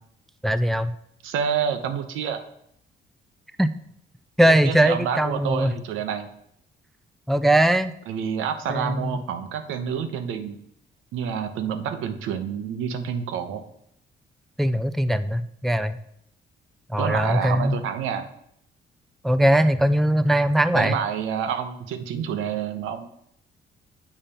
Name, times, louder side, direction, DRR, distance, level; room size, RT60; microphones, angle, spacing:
voice 1, 0.4-0.9 3.6-3.7 4.4-5.7 7.3-7.9 8.7-9.2 14.6-16.0 16.9-17.8 19.2-21.0, right 1 dB, ahead, 11 dB, 0.3 m, -20 dB
voice 2, 1.2-2.4 4.5-6.3 8.1-10.6 11.1-13.6 17.0-18.3 20.7-23.1, right 7 dB, 90° right, 8 dB, 0.8 m, -28 dB
7.1 x 4.2 x 5.3 m, 0.72 s
cardioid pair, 90°, 20 cm